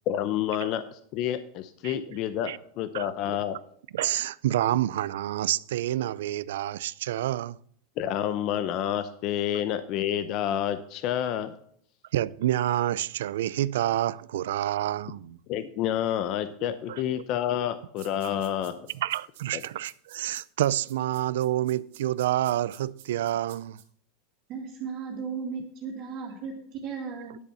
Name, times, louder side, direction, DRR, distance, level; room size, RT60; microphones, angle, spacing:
voice 1, 0.1-3.6 8.0-11.5 15.5-18.7 19.5-19.6, left 10 dB, 40° left, 0.6 m, -29 dB
voice 2, 2.9-3.4 3.9-7.6 12.1-15.4 16.9-17.0 18.2-18.4 19.0-23.8, right 13 dB, 85° right, 0.4 m, -28 dB
sound 1, 18.0-23.8, right 12 dB, 60° right, 2.1 m, -52 dB
voice 3, 24.5-27.4, right 5 dB, 35° right, 2.4 m, -36 dB
10.5 x 6.8 x 5.6 m
supercardioid pair, 165°, 0 cm